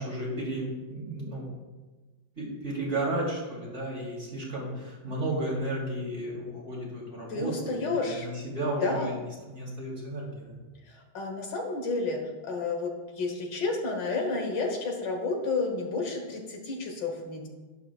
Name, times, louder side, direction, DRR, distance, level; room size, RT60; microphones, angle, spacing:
voice 1, 0.0-1.4 2.4-9.2 9.4-10.6, right 1 dB, 35° right, -5 dB, 3.3 m, -33 dB
voice 2, 7.3-8.3 8.8-9.1 11.1-17.5, left 3 dB, 70° left, 3 dB, 1.8 m, -31 dB
11.5 x 10.5 x 2.4 m, 1.3 s
omnidirectional pair, 2.1 m